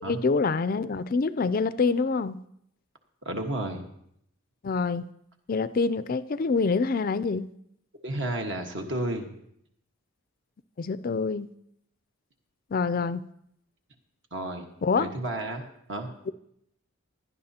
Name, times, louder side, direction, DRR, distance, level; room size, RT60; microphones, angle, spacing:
voice 1, 0.1-2.4 4.6-5.1 5.5-7.5 10.8-11.5 12.7-13.2 14.8-15.1, left 4 dB, 40° left, 14 dB, 0.4 m, -26 dB
voice 2, 3.2-3.9 8.0-9.3 14.3-14.7 14.9-16.1, right 1 dB, 55° right, 4 dB, 1.4 m, -32 dB
17.0 x 11.0 x 2.8 m, 0.74 s
head